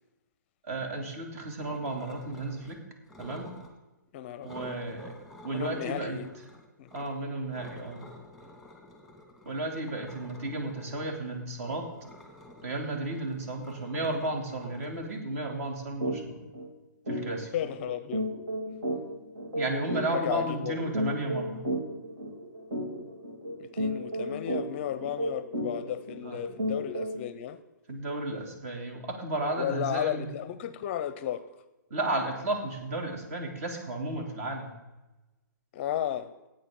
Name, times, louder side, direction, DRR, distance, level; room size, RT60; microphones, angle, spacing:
voice 1, 0.6-2.8 3.2-3.5 4.4-5.1 5.4-6.2 6.9-8.0 9.4-11.8 12.6-16.4 17.1-17.5 19.5-21.6 26.2-26.6 27.9-30.3 31.9-34.7, right 2 dB, 45° right, 2.8 m, -33 dB
sound 1, 1.6-2.8 3.1-3.7 4.4-7.1 7.5-15.6, left 1 dB, ahead, 1.9 m, -50 dB
voice 2, 4.1-4.7 5.5-6.4 6.8-6.9 17.5-18.3 20.1-20.8 23.6-27.6 29.6-31.4 35.7-36.3, left 11 dB, 35° left, 0.6 m, -34 dB
sound 2, 16.0-16.2 16.5-16.7 17.1-27.3, equal, 80° right, 3.6 m, -33 dB
15.5 x 8.8 x 3.7 m
hypercardioid pair, 135°, 11 cm